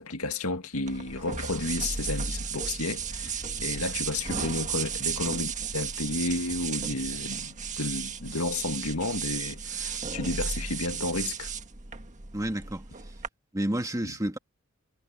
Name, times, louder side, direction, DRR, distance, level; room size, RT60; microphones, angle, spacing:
voice 1, 0.0-11.5, left 2 dB, 75° left, 2.0 m, -32 dB
sound 1, 0.9-13.3, right 6 dB, 35° right, 1.5 m, -34 dB
voice 2, 12.3-12.8 13.5-14.4, right 1 dB, 15° right, 2.0 m, -30 dB
head